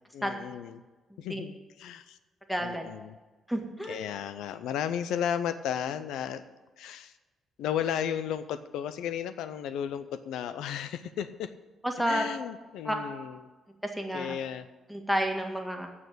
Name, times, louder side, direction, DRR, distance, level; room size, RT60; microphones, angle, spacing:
voice 1, 0.1-0.8 1.2-2.2 2.6-3.2 3.9-6.4 6.8-7.1 7.6-11.5 12.0-13.4 14.1-14.7, left 9 dB, 85° left, 12 dB, 0.5 m, -34 dB
voice 2, 2.5-2.8 3.5-4.0 11.8-12.2 12.8-13.0 14.0-14.3 14.9-15.9, equal, ahead, 3 dB, 1.8 m, -30 dB
8.5 x 7.0 x 7.9 m, 1.2 s
cardioid pair, 90°, 0 cm